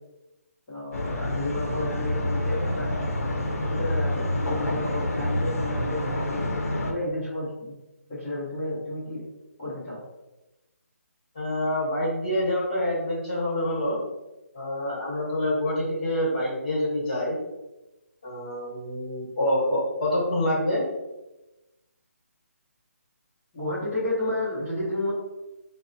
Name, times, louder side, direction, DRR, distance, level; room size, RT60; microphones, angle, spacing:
voice 1, 0.7-3.0 3.6-6.4 6.8-7.7 8.1-9.2 9.6-10.0 23.5-25.1, left 1 dB, 10° left, -11 dB, 0.8 m, -31 dB
sound 1, 0.9-6.9, left 1 dB, 70° left, 0.7 m, -27 dB
voice 2, 11.3-14.0 14.5-17.3 18.2-20.8, left 1 dB, 30° left, -5 dB, 1.2 m, -26 dB
5.1 x 2.1 x 2.6 m, 1.0 s
hypercardioid pair, 175°, 8 cm